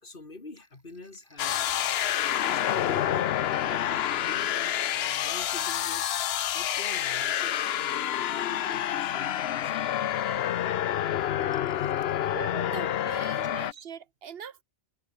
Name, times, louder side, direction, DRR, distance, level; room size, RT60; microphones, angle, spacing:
voice 1, 0.0-1.7 2.2-3.3 3.6-6.1 6.5-9.8 11.7-12.0, left 3 dB, 55° left, 2.8 m, -46 dB
sound 1, 0.6-1.9 2.2-7.8 8.2-9.4 10.0-10.7 11.3-12.2 12.8-13.9, equal, 15° right, 5.8 m, -60 dB
sound 2, 1.4-13.7, left 11 dB, 75° left, 0.9 m, -28 dB
voice 2, 12.3-14.6, right 8 dB, 70° right, 1.0 m, -41 dB
omnidirectional pair, 1.1 m